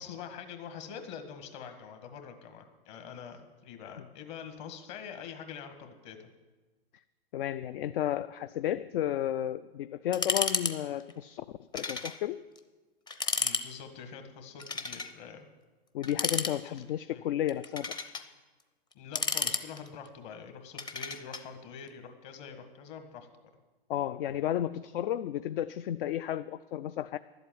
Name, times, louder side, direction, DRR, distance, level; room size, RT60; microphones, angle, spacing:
voice 1, 0.0-6.3 13.4-15.5 16.6-16.8 17.1-17.2 19.0-23.3, left 7 dB, 45° left, 7 dB, 1.8 m, -45 dB
voice 2, 7.3-11.4 11.7-12.4 15.9-18.0 23.9-27.2, left 11 dB, 60° left, 13 dB, 0.4 m, -32 dB
sound 1, 10.1-10.7 11.0-11.1 11.7-12.2 12.6-12.7 13.1-13.7 14.6-15.1 16.0-16.9 17.5-18.3 18.9-20.1 20.8-21.4, left 4 dB, 15° left, 0.6 m, -32 dB
11.5 x 8.0 x 9.3 m, 1.3 s
hypercardioid pair, 125°, 31 cm